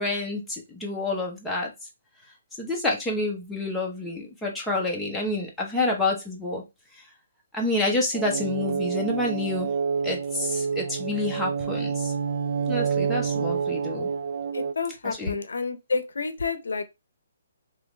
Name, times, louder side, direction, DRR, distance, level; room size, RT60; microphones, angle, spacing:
voice 1, 0.0-1.7 2.6-6.6 7.5-9.7 10.0-12.1 12.7-14.1 15.0-15.3, left 2 dB, 5° left, 0.9 m, -28 dB
sound 1, 8.1-14.7, right 6 dB, 60° right, 0.3 m, -28 dB
voice 2, 14.5-16.8, left 4 dB, 85° left, 0.6 m, -29 dB
3.2 x 2.5 x 3.1 m
hypercardioid pair, 155°, 0 cm